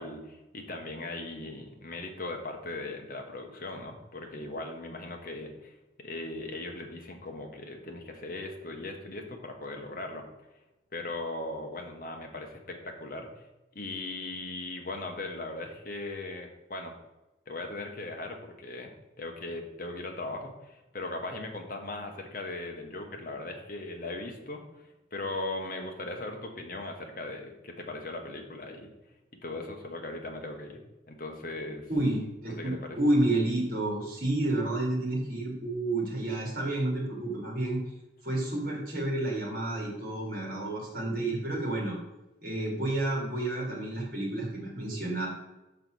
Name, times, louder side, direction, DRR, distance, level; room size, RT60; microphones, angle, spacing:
voice 1, 0.0-10.3 10.9-13.5 13.7-16.9 17.5-28.9 29.4-30.8 31.1-31.9 32.6-33.0, left 2 dB, 50° left, 3 dB, 1.0 m, -39 dB
voice 2, 31.9-37.8 38.2-42.0 42.4-45.3, right 1 dB, 50° right, -2 dB, 1.9 m, -30 dB
5.6 x 4.0 x 6.1 m, 1.0 s
head